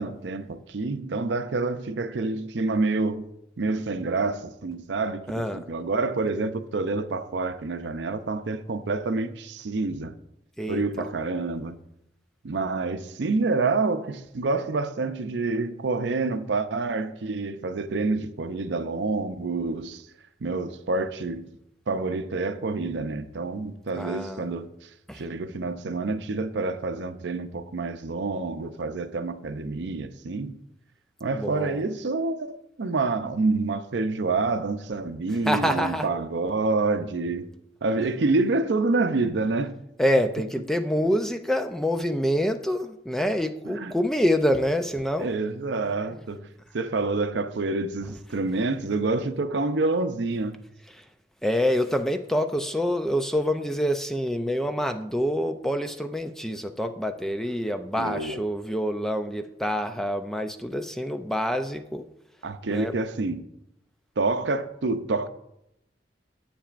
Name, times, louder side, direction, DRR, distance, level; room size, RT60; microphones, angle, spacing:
voice 1, 0.0-3.3 3.6-10.1 10.7-11.8 12.4-20.1 20.4-21.5 21.9-30.6 31.2-37.5 37.8-39.8 43.7-43.9 45.2-46.5 46.7-50.6 58.0-58.4 62.4-63.4 64.2-65.3, right 3 dB, 75° right, 0.6 m, -27 dB
voice 2, 5.3-5.6 10.6-11.1 24.0-24.5 25.1-25.2 31.3-31.8 35.4-36.1 40.0-45.3 50.9-51.1 51.4-62.1 62.7-62.9, equal, ahead, 0.3 m, -26 dB
10.0 x 8.6 x 2.5 m
head